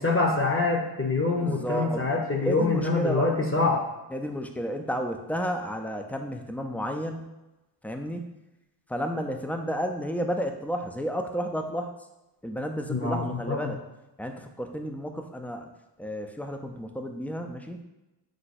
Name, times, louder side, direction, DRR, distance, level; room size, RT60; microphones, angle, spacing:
voice 1, 0.0-3.8 12.9-13.7, left 3 dB, 30° left, 0 dB, 0.8 m, -25 dB
voice 2, 1.4-2.0 2.4-3.3 4.1-7.3 7.8-8.4 8.9-11.9 12.4-13.8 14.2-15.7 16.0-17.8, equal, 5° left, 4 dB, 0.4 m, -32 dB
4.8 x 2.2 x 4.1 m, 0.99 s
cardioid pair, 60°, 44 cm